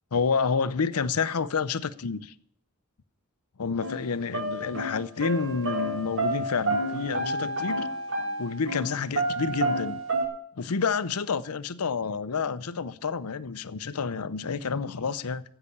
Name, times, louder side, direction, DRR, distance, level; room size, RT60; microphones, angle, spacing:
voice 1, 0.1-2.3 3.6-7.9 8.4-10.0 10.6-15.4, left 5 dB, 85° left, 0.7 m, -29 dB
sound 1, 3.8-4.0 4.3-8.9 9.1-10.2, right 1 dB, 60° right, 3.2 m, -29 dB
15.0 x 5.8 x 8.5 m
head